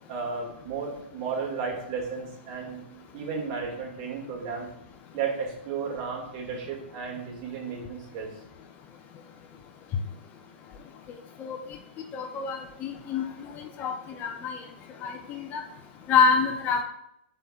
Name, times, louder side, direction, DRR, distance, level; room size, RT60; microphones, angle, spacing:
voice 1, 0.1-2.8 3.1-4.7 5.1-8.3, right 5 dB, 45° right, -1 dB, 2.3 m, -33 dB
voice 2, 12.1-13.2 13.8-14.6 15.0-15.6 16.1-16.8, left 5 dB, 30° left, 4 dB, 0.9 m, -26 dB
12.0 x 4.4 x 2.5 m, 0.78 s
hypercardioid pair, 135°, 6 cm